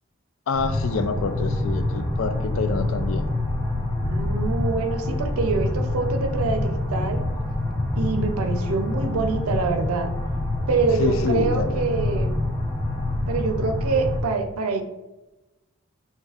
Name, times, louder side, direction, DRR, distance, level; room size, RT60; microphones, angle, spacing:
voice 1, 0.5-3.3 11.0-11.8, left 4 dB, 65° left, 9 dB, 0.3 m, -27 dB
sound 1, 0.5-14.2, left 1 dB, 10° left, 0.6 m, -26 dB
voice 2, 4.1-7.2 8.0-10.1 10.7-12.4 13.3-14.8, right 4 dB, 85° right, 6 dB, 0.5 m, -25 dB
4.0 x 3.5 x 2.4 m, 1.0 s
head